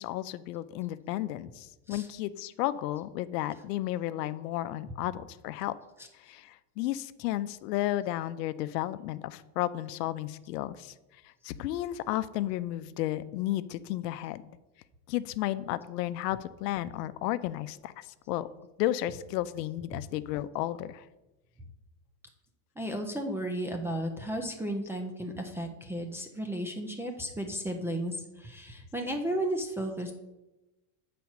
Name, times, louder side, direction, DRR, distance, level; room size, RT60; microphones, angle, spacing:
voice 1, 0.0-5.7 6.2-10.9 11.4-14.4 15.1-18.5 18.8-21.0, left 14 dB, 85° left, 14 dB, 0.6 m, -33 dB
voice 2, 22.8-30.1, right 1 dB, 5° right, 1 dB, 0.3 m, -34 dB
7.9 x 4.2 x 5.8 m, 1.0 s
supercardioid pair, 125°, 47 cm